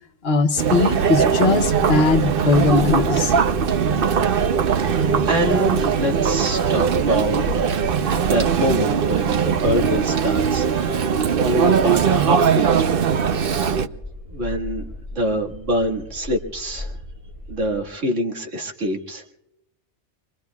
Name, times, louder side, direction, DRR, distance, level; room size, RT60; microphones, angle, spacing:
voice 1, 0.2-3.3, left 4 dB, 55° left, 8 dB, 1.1 m, -19 dB
Chatter, 0.6-13.9, right 7 dB, 55° right, 0.8 m, -20 dB
sound 1, 1.6-17.8, left 1 dB, 20° right, 4.4 m, -37 dB
voice 2, 4.7-7.6 8.2-13.1 13.5-13.8 14.3-14.8 15.1-17.0 17.5-19.3, equal, 80° right, 1 dB, 2.2 m, -25 dB
26.5 x 22.5 x 2.3 m, 0.87 s
omnidirectional pair, 1.3 m